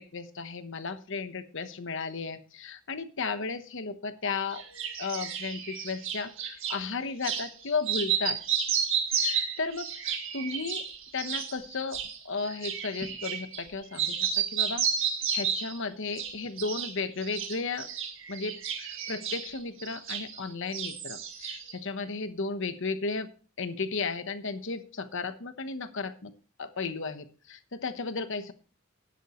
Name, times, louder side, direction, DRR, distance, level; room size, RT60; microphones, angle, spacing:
voice 1, 0.0-4.6 5.0-8.4 9.1-10.8 11.1-17.9 18.3-23.3 23.6-26.3 26.6-28.5, left 4 dB, 65° left, 10 dB, 1.1 m, -34 dB
sound 1, 4.5-6.8 7.2-7.5 7.8-13.7 13.9-15.8 16.1-16.9 17.2-20.5 20.7-21.8, right 7 dB, 70° right, 2.0 m, -32 dB
13.0 x 10.0 x 3.1 m, 0.37 s
head